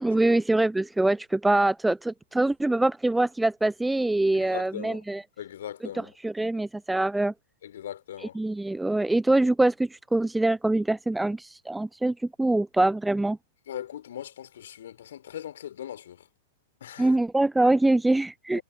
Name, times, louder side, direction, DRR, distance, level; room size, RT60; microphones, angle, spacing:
voice 1, 0.0-5.2 5.9-7.3 8.2-13.4 17.0-18.6, right 2 dB, 5° right, 0.6 m, -24 dB
voice 2, 4.3-5.0 5.4-6.1 7.6-8.4 13.7-16.3 16.8-17.1 18.5-18.6, left 10 dB, 65° left, 3.4 m, -39 dB
figure-of-eight pair, 100°, 0 cm